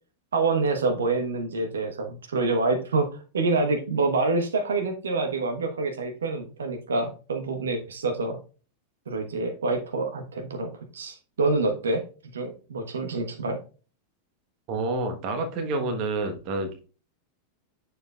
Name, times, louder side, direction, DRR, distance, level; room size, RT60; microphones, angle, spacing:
voice 1, 0.3-8.4 9.1-12.0 12.3-13.6, right 3 dB, 65° right, 5 dB, 1.2 m, -27 dB
voice 2, 14.7-16.9, right 2 dB, 40° right, 5 dB, 1.2 m, -28 dB
9.0 x 6.9 x 2.4 m, 0.35 s
figure-of-eight pair, 90°, 0 cm